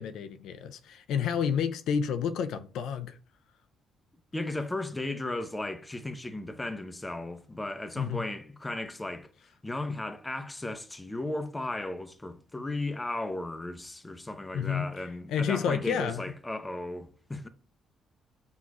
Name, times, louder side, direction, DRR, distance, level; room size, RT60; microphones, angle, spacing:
voice 1, 0.0-3.1 8.0-8.2 14.5-14.9 15.3-16.2, left 7 dB, 80° left, 0.4 m, -30 dB
voice 2, 4.3-9.3 9.6-17.5, left 2 dB, 15° left, 0.6 m, -35 dB
6.0 x 2.9 x 2.4 m
cardioid pair, 90°, 0 cm